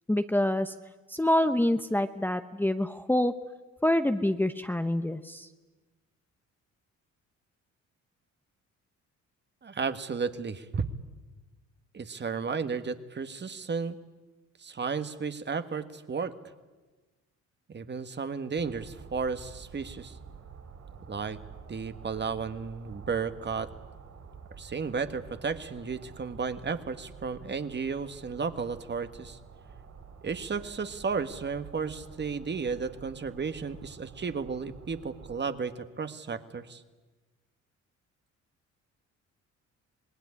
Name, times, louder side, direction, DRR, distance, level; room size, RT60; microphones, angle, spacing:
voice 1, 0.1-0.7 1.1-3.3 3.8-5.5, left 1 dB, 5° left, 8 dB, 0.9 m, -26 dB
voice 2, 9.6-10.8 11.9-14.0 14.6-16.3 17.7-20.2 21.1-21.4 21.7-23.7 24.6-29.4 30.2-36.8, right 5 dB, 35° right, 10 dB, 1.6 m, -33 dB
sound 1, 18.6-35.4, right 6 dB, 60° right, 5.8 m, -49 dB
26.0 x 19.5 x 9.8 m, 1.2 s
cardioid pair, 90°, 30 cm